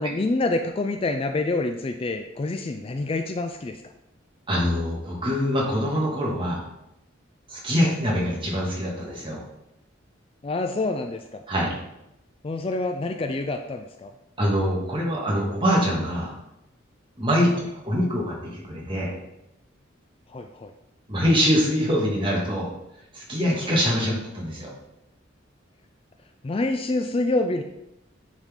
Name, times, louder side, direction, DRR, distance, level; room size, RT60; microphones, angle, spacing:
voice 1, 0.0-3.8 7.8-7.9 10.4-11.4 12.4-14.1 17.5-17.7 20.3-20.7 24.1-24.2 26.4-27.6, left 2 dB, 30° left, 5 dB, 0.3 m, -27 dB
voice 2, 4.5-6.6 7.5-9.4 11.5-11.7 14.4-16.3 17.2-19.1 21.1-22.7 23.1-24.7, equal, 25° right, -3 dB, 1.8 m, -24 dB
8.9 x 4.1 x 3.6 m, 0.86 s
head